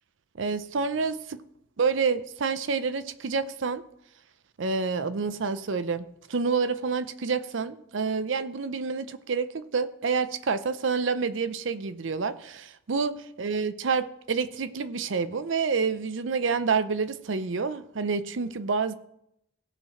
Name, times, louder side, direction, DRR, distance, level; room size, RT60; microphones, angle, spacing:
voice 1, 0.4-1.4 1.8-3.8 4.6-18.9, right 5 dB, 75° right, 14 dB, 0.6 m, -28 dB
16.5 x 5.8 x 4.3 m, 0.79 s
head